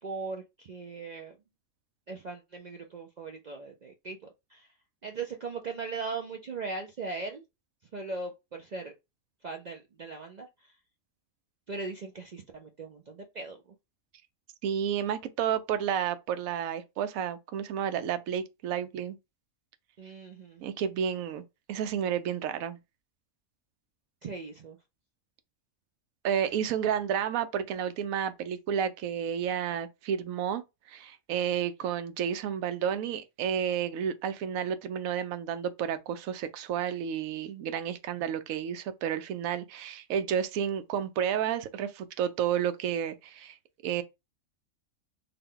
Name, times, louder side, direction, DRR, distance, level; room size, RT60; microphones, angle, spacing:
voice 1, 0.0-1.4 2.1-4.7 5.0-7.4 7.9-8.9 9.4-10.7 11.7-13.6 20.0-20.6 24.2-24.8, right 4 dB, 60° right, 0.4 m, -39 dB
voice 2, 14.6-19.2 20.6-21.4 21.7-22.8 26.2-30.6 30.9-43.6 43.8-44.0, right 8 dB, 90° right, 1.0 m, -31 dB
3.8 x 2.2 x 3.6 m
omnidirectional pair, 1.4 m